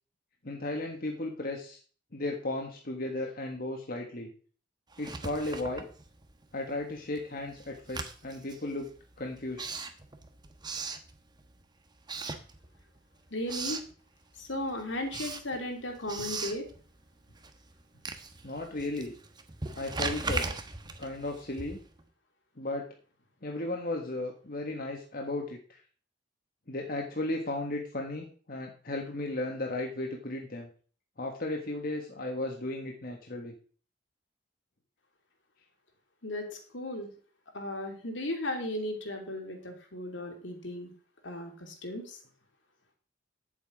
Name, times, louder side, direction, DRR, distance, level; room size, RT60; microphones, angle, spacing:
voice 1, 0.4-1.8 2.1-4.3 5.0-5.9 6.5-8.9 9.2-9.6 18.4-19.1 19.8-20.5 21.0-21.8 22.6-22.8 23.4-25.8 26.7-30.7 31.2-33.5, left 2 dB, 50° left, 1 dB, 1.5 m, -35 dB
Writing, 4.9-6.5 6.8-11.6 12.0-13.0 13.3-13.9 14.4-22.0, right 3 dB, 20° right, 1.0 m, -39 dB
voice 2, 13.3-13.8 14.4-16.6 36.2-36.5 36.7-37.1 37.5-40.9 41.2-42.2, left 1 dB, 75° left, 3 dB, 2.8 m, -36 dB
9.8 x 7.5 x 4.9 m, 0.41 s
head